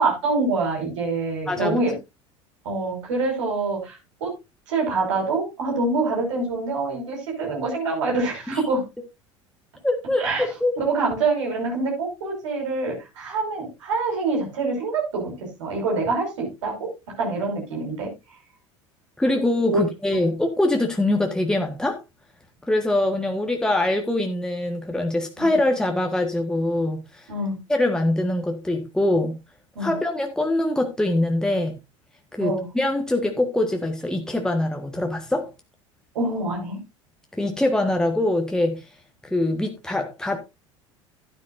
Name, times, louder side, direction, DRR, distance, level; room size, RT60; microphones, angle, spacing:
voice 1, 0.0-1.9 2.6-4.3 4.7-8.8 10.2-16.9 17.2-18.1 19.7-19.8 20.1-20.4 25.4-25.5 27.3-27.6 29.8-29.9 32.4-32.7 36.1-36.8, right 3 dB, 70° right, 5.5 m, -25 dB
voice 2, 1.5-1.8 9.8-10.7 19.2-22.0 22.7-27.3 27.7-29.4 29.8-31.8 32.3-35.5 37.3-38.8 39.2-40.4, left 1 dB, 5° left, 1.5 m, -23 dB
13.0 x 9.8 x 2.6 m
figure-of-eight pair, 70°, 16 cm